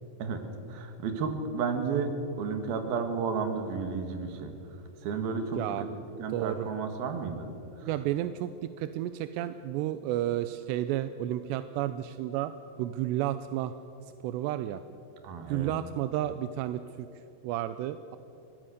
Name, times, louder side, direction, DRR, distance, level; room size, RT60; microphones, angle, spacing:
voice 1, 0.7-2.1 2.4-4.5 5.0-5.7 6.2-7.5 15.2-15.7, right 5 dB, 60° right, 6 dB, 3.3 m, -32 dB
voice 2, 5.6-5.9 6.3-6.7 7.8-12.5 12.8-13.7 14.2-14.8 15.5-17.1 17.4-18.2, right 13 dB, 80° right, 11 dB, 2.6 m, -32 dB
24.0 x 18.5 x 6.5 m, 3.0 s
omnidirectional pair, 5.4 m